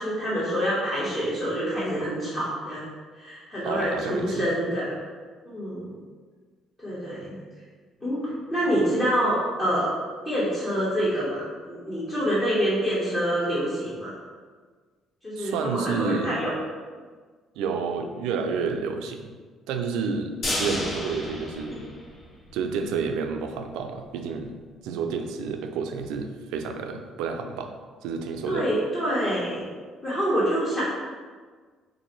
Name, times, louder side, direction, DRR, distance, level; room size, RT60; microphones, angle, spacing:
voice 1, 0.0-2.9 3.2-4.9 5.4-5.9 6.8-7.3 8.0-9.9 10.2-14.1 15.2-16.5 28.5-29.6 30.0-30.8, equal, 25° left, -9 dB, 1.0 m, -26 dB
voice 2, 3.6-4.5 15.4-16.3 17.6-19.3 19.7-20.3 20.6-21.8 22.5-24.5 24.8-27.7 28.0-28.7, right 5 dB, 90° right, 5 dB, 0.3 m, -30 dB
sound 1, 20.4-22.6 22.9-23.0 23.3-23.4, left 1 dB, 70° left, 1.4 m, -31 dB
4.5 x 2.6 x 3.0 m, 1.5 s
cardioid pair, 110°, 0 cm